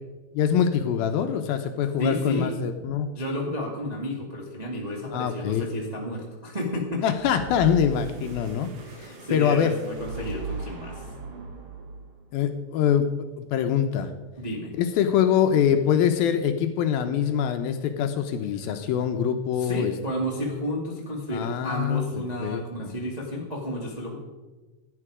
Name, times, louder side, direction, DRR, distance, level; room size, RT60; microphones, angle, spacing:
voice 1, 0.3-3.1 5.1-5.8 7.0-9.7 12.3-13.1 13.4-14.1 14.8-19.9 21.3-22.9, left 8 dB, 75° left, 7 dB, 2.4 m, -24 dB
voice 2, 2.0-2.5 2.8-7.0 9.2-11.1 14.4-14.7 19.6-24.2, left 1 dB, 30° right, -2 dB, 0.7 m, -31 dB
sound 1, 7.1-12.2, right 5 dB, 60° right, 1.7 m, -38 dB
15.5 x 10.0 x 5.0 m, 1.2 s
omnidirectional pair, 4.7 m